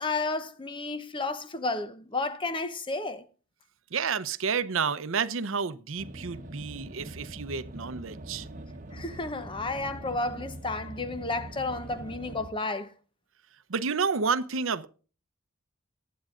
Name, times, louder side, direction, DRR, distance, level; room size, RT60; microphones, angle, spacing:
voice 1, 0.0-3.2 8.9-12.9, left 3 dB, 25° left, 0.9 m, -32 dB
voice 2, 3.9-8.5 13.7-14.9, right 5 dB, 75° right, 0.7 m, -30 dB
sound 1, 6.0-12.5, right 1 dB, 40° right, 1.1 m, -43 dB
19.0 x 9.4 x 2.5 m
head